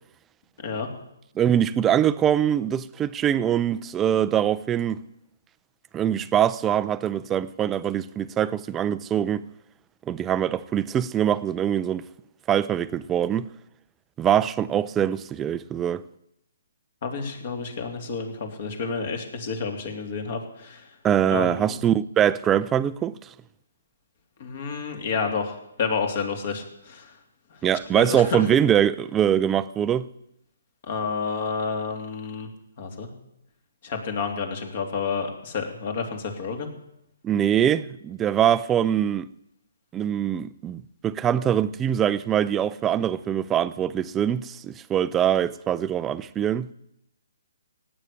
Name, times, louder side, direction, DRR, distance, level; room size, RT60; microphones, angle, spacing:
voice 1, 0.6-0.9 17.0-20.9 21.3-21.8 24.4-27.1 28.0-28.4 30.8-32.5 32.8-33.1 33.8-36.7, left 5 dB, 50° left, 3.1 m, -30 dB
voice 2, 1.4-5.0 5.9-9.4 10.1-12.1 12.5-13.5 14.2-16.0 21.0-23.1 27.6-30.1 37.2-39.3 39.9-46.7, right 9 dB, 15° right, 0.5 m, -23 dB
17.0 x 8.9 x 8.5 m
hypercardioid pair, 145°, 0 cm